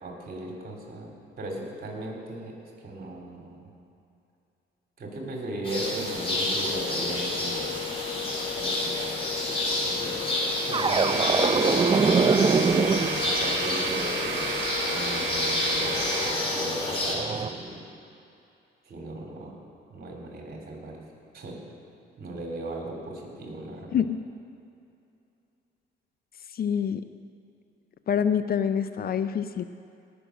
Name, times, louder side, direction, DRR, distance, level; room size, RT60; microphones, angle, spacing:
voice 1, 0.0-2.5 2.8-3.7 5.0-7.8 8.5-9.1 9.8-12.3 13.2-14.6 14.9-17.9 18.8-19.6 19.9-21.0 21.3-21.6 22.2-24.0, right 1 dB, 50° right, 0 dB, 3.3 m, -37 dB
sound 1, 5.6-17.2, left 2 dB, 30° left, 3.0 m, -29 dB
sound 2, 10.7-13.4 16.2-17.5, right 5 dB, 25° right, 0.5 m, -24 dB
sound 3, 10.9-16.3, right 5 dB, 70° right, 1.5 m, -33 dB
voice 2, 26.5-27.0 28.1-29.6, left 8 dB, 50° left, 11 dB, 0.5 m, -26 dB
18.0 x 6.2 x 6.3 m, 2.7 s
cardioid pair, 90°, 20 cm